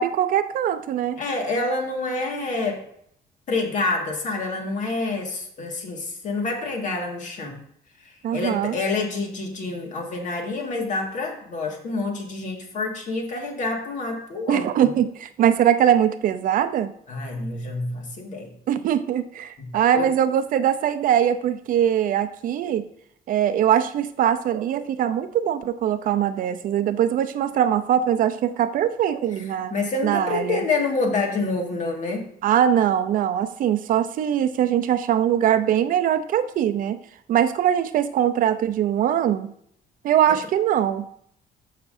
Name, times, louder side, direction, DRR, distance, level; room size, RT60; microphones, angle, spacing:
voice 1, 0.0-1.2 8.2-8.8 14.5-16.9 18.7-22.8 23.3-29.7 30.0-30.6 32.4-37.0 37.3-39.5 40.0-41.1, right 10 dB, 60° right, 11 dB, 0.6 m, -22 dB
voice 2, 1.2-2.9 3.5-7.6 8.0-14.9 17.1-18.6 19.6-20.1 29.4-32.3, left 3 dB, 50° left, 2 dB, 1.9 m, -27 dB
14.0 x 5.9 x 2.7 m, 0.68 s
cardioid pair, 150°, 16 cm